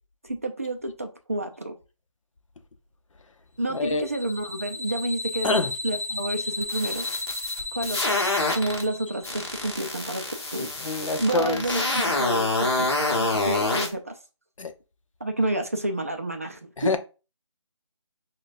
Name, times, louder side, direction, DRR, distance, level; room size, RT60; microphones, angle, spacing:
voice 1, 0.2-1.7 3.6-7.1 7.7-8.2 8.5-10.2 10.5-10.7 11.2-12.9 13.2-14.2 15.2-17.0, right 1 dB, 30° right, 0.3 m, -29 dB
voice 2, 3.7-4.0 5.4-5.7 10.6-12.0 14.6-14.7 16.8-17.0, left 3 dB, 80° left, 0.7 m, -26 dB
sound 1, 3.8-9.7, left 2 dB, 30° left, 0.5 m, -34 dB
sound 2, 6.6-8.8 9.2-13.9, left 2 dB, 55° left, 1.1 m, -26 dB
6.0 x 2.2 x 2.5 m
figure-of-eight pair, 170°, 16 cm